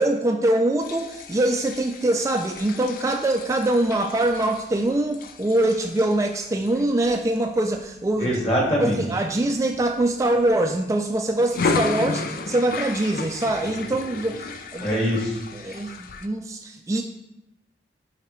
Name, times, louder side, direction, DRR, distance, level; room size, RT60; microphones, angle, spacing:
voice 1, 0.0-8.5 8.8-15.0 15.5-17.0, right 1 dB, 15° right, 3 dB, 0.3 m, -23 dB
sound 1, 0.8-8.6 9.1-9.4 9.7-10.9 11.4-16.3, left 4 dB, 50° left, 0.4 m, -33 dB
voice 2, 8.2-9.0 14.8-15.4, equal, 30° left, -3 dB, 1.7 m, -23 dB
8.6 x 4.9 x 3.1 m, 0.92 s
head